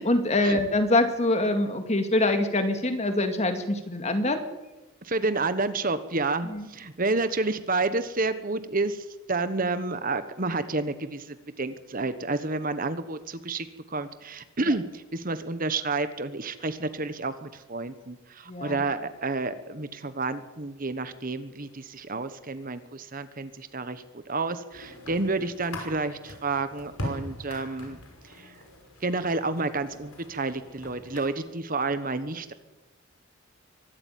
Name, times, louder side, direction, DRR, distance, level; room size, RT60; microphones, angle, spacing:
voice 1, 0.0-4.4 6.4-6.7 18.5-18.8, left 2 dB, 30° left, 7 dB, 2.2 m, -24 dB
voice 2, 5.0-28.0 28.4-28.5 29.0-32.5, right 3 dB, 40° right, 12 dB, 1.2 m, -30 dB
sound 1, 24.7-31.3, left 1 dB, 75° left, 5.8 m, -41 dB
24.0 x 13.0 x 9.3 m, 1.1 s
head